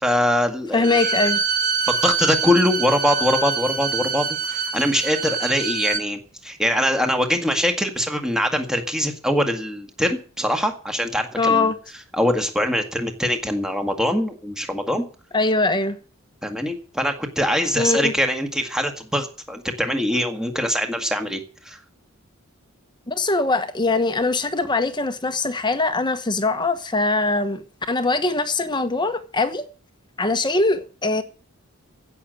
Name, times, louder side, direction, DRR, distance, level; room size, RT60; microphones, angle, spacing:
voice 1, 0.0-1.1 1.9-11.7 12.1-15.1 16.4-21.4 21.7-21.8, left 1 dB, 5° right, 1.8 m, -23 dB
voice 2, 0.7-1.4 11.4-11.8 15.3-16.0 17.7-18.1 23.1-29.6 30.2-31.2, left 3 dB, 20° left, 1.1 m, -22 dB
Bowed string instrument, 0.8-6.0, right 5 dB, 35° right, 1.5 m, -25 dB
16.0 x 6.7 x 8.9 m
head